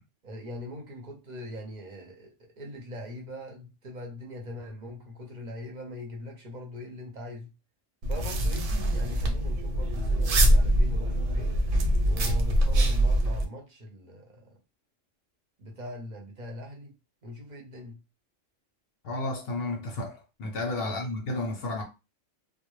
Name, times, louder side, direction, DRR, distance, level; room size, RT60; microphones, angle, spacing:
voice 1, 0.2-7.5 8.1-11.6 12.0-14.6 15.6-16.9 17.2-18.0 20.8-21.1, left 1 dB, 45° right, 0.6 m, -41 dB
sound 1, 8.0-13.5, right 1 dB, 90° right, 0.9 m, -24 dB
voice 2, 19.0-21.8, left 2 dB, 60° left, 0.7 m, -32 dB
2.1 x 2.0 x 3.0 m
omnidirectional pair, 1.3 m